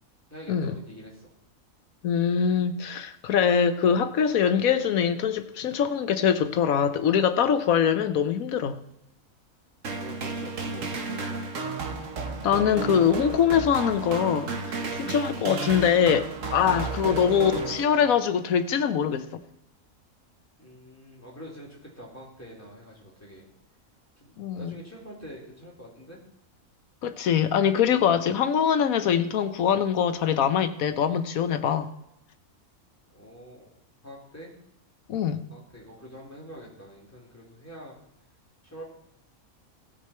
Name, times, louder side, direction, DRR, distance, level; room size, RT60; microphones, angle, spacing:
voice 1, 0.3-1.3 10.0-11.5 20.6-23.5 24.2-26.2 33.1-33.7 34.0-34.5 35.5-37.9 38.6-38.8, equal, 10° left, 3.4 m, -45 dB
voice 2, 2.0-8.8 12.4-19.3 24.4-24.8 27.0-31.9 35.1-35.4, left 8 dB, 80° left, 1.3 m, -23 dB
sound 1, 9.8-18.3, right 4 dB, 65° right, 1.5 m, -33 dB
17.0 x 6.6 x 4.4 m
omnidirectional pair, 1.5 m